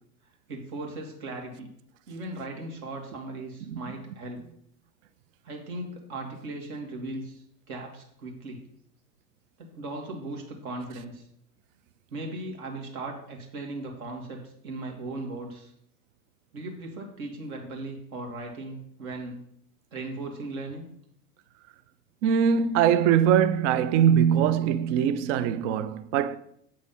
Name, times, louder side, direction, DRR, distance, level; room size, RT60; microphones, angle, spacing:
voice 1, 0.5-1.7 2.1-4.5 5.4-8.7 9.6-11.2 12.1-15.7 16.5-19.5 19.9-20.9, right 2 dB, 70° right, 2.2 m, -38 dB
voice 2, 22.2-26.4, right 8 dB, 55° right, 0.6 m, -22 dB
7.6 x 3.9 x 5.4 m
hypercardioid pair, 95°, 45 cm